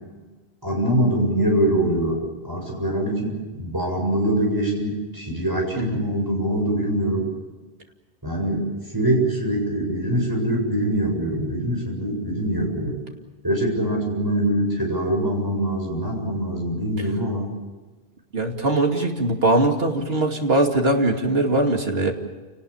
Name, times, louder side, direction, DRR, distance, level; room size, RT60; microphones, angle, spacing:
voice 1, 0.6-7.3 8.2-13.0 13.4-17.5, right 1 dB, 20° right, 0 dB, 7.6 m, -23 dB
voice 2, 18.3-22.1, right 2 dB, 70° right, 2 dB, 2.8 m, -21 dB
29.0 x 19.0 x 7.3 m, 1.3 s
omnidirectional pair, 1.1 m